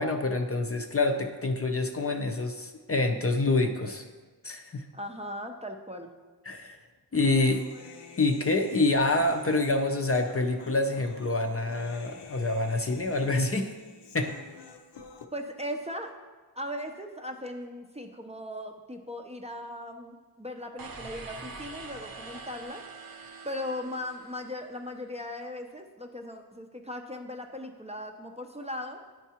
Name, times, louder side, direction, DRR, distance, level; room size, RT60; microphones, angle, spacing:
voice 1, 0.0-4.0 4.4-4.9 6.5-6.8 7.1-7.6 8.2-13.7 14.1-14.4, left 2 dB, 35° left, 5 dB, 0.5 m, -27 dB
voice 2, 4.9-6.1 15.3-16.1 16.6-22.8 23.4-29.0, left 1 dB, 15° right, 3 dB, 0.5 m, -38 dB
Human voice, 7.2-15.3, left 5 dB, 70° left, 0.7 m, -48 dB
sound 1, 20.8-25.0, right 3 dB, 55° right, 0.7 m, -44 dB
10.0 x 4.5 x 2.9 m, 1.3 s
wide cardioid pair, 75°, 42 cm